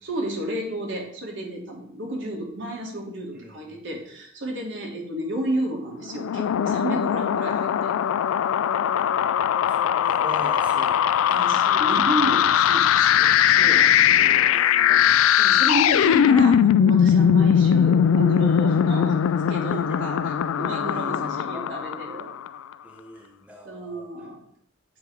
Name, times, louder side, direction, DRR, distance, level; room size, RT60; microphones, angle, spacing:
voice 1, 0.0-7.9 11.3-13.9 14.8-15.0 15.4-19.2 19.5-22.3 23.6-24.4, right 1 dB, 65° right, 0 dB, 1.8 m, -31 dB
voice 2, 3.3-4.1 9.6-11.4 13.5-13.9 14.5-15.1 19.7-20.2 20.9-21.9 22.8-24.3, equal, 5° right, 0 dB, 0.7 m, -42 dB
sound 1, 6.1-22.5, left 9 dB, 85° left, 0.3 m, -20 dB
8.6 x 3.4 x 4.7 m, 0.66 s
head